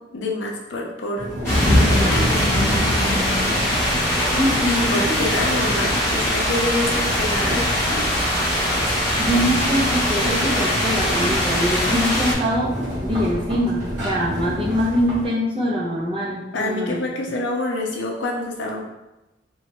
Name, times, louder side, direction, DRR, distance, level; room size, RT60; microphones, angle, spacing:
voice 1, 0.1-1.3 1.7-3.7 4.1-8.1 16.5-18.8, left 1 dB, 75° left, 0 dB, 0.6 m, -27 dB
sound 1, 1.2-15.3, equal, 65° right, 1.3 m, -30 dB
sound 2, 1.4-12.3, left 1 dB, 15° left, 1.1 m, -21 dB
voice 2, 4.3-5.3 8.9-12.7 13.0-17.0, equal, 30° right, -5 dB, 0.7 m, -23 dB
3.0 x 2.3 x 2.9 m, 0.99 s
head